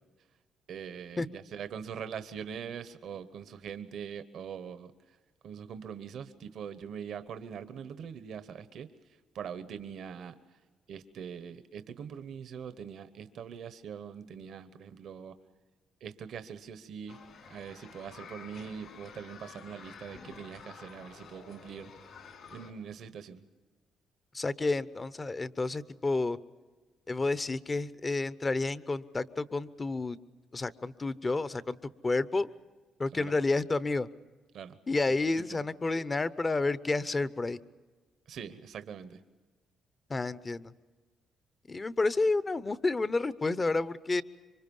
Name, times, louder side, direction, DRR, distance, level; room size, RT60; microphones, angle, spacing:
voice 1, 0.7-4.9 5.4-8.9 9.3-10.3 10.9-15.3 16.0-21.9 22.5-23.4 33.1-33.3 34.5-34.8 35.5-35.6 38.3-39.2, right 7 dB, 70° right, 11 dB, 1.1 m, -42 dB
sound 1, 17.1-22.7, left 5 dB, 65° left, 4.2 m, -50 dB
voice 2, 24.3-26.4 27.1-30.2 30.5-31.8 32.0-32.5 33.0-34.1 34.9-37.6 40.1-40.7 41.7-44.2, left 3 dB, 25° left, 15 dB, 0.8 m, -30 dB
26.5 x 24.0 x 5.5 m, 1.3 s
cardioid pair, 90°, 0 cm